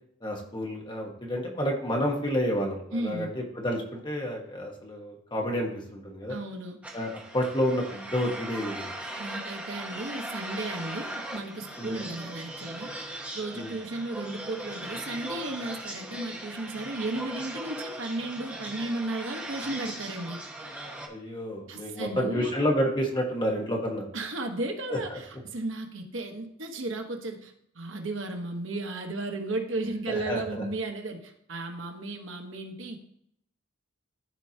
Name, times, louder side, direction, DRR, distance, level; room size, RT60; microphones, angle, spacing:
voice 1, 0.2-6.4 6.9-8.9 11.8-12.0 13.5-13.7 21.1-24.0 30.1-30.6, equal, 20° left, 0 dB, 1.3 m, -30 dB
voice 2, 2.9-3.3 6.3-6.8 9.2-12.9 13.3-20.4 21.7-22.5 24.1-33.0, right 2 dB, 75° right, 4 dB, 1.3 m, -34 dB
sound 1, 6.8-21.1, right 1 dB, 5° right, 1.0 m, -39 dB
13.5 x 4.5 x 2.9 m, 0.70 s
head